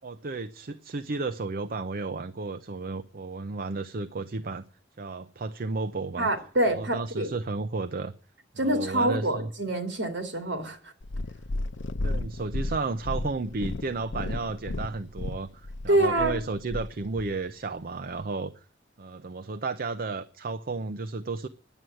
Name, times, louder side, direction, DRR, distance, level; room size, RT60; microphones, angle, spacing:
voice 1, 0.0-4.6 5.0-6.3 6.8-8.1 8.6-9.5 12.0-18.5 19.0-21.5, right 3 dB, 55° right, 0.6 m, -33 dB
voice 2, 6.2-7.3 8.6-10.8 15.9-16.3, right 1 dB, 80° right, 2.7 m, -26 dB
Purr, 11.0-17.3 18.1-18.2, left 2 dB, 70° left, 0.6 m, -33 dB
11.0 x 7.8 x 9.8 m
head